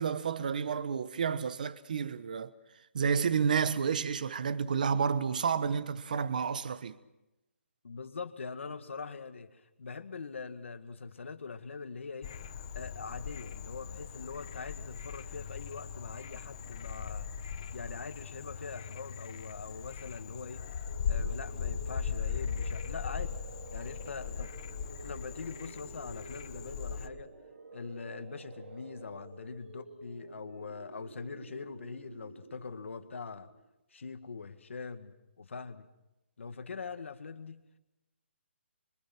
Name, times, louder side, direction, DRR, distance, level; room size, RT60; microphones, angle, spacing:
voice 1, 0.0-2.5 2.9-7.0, right 6 dB, 40° right, 1.1 m, -30 dB
voice 2, 7.8-12.3 12.7-17.3 17.7-20.7 21.1-23.4 23.7-24.6 25.0-27.3 27.7-33.5 33.9-35.9 36.4-37.7, left 5 dB, 70° left, 1.9 m, -43 dB
Frog, 12.2-27.1, left 7 dB, 25° left, 0.9 m, -39 dB
sound 1, 20.9-33.7, right 3 dB, 75° right, 4.5 m, -50 dB
26.5 x 25.5 x 6.1 m
hypercardioid pair, 180°, 7 cm